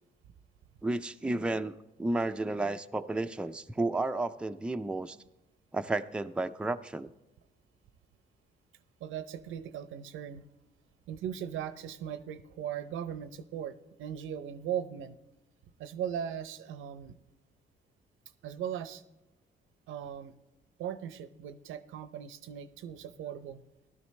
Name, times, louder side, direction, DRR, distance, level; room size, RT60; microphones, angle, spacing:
voice 1, 0.8-1.7 2.0-5.2 5.7-7.1, right 2 dB, 5° right, 8 dB, 0.4 m, -32 dB
voice 2, 9.0-10.4 11.1-15.2 15.8-17.2 18.4-19.0 19.9-20.3 20.8-23.6, right 9 dB, 85° right, 13 dB, 0.7 m, -38 dB
15.5 x 12.0 x 3.2 m, 1.0 s
cardioid pair, 90°, 20 cm